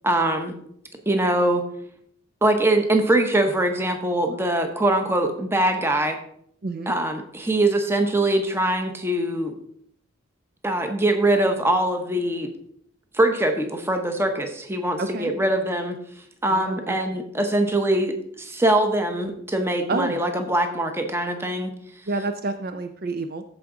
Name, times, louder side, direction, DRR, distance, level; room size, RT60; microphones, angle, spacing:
voice 1, 0.0-0.5 1.1-1.6 2.4-6.2 6.9-9.6 10.6-12.5 13.1-16.0 16.4-21.7, right 1 dB, 10° right, 5 dB, 0.9 m, -22 dB
voice 2, 6.6-6.9 15.0-15.3 16.5-17.0 19.9-20.2 22.1-23.4, right 3 dB, 45° right, 8 dB, 0.5 m, -28 dB
14.0 x 4.7 x 3.8 m, 0.68 s
head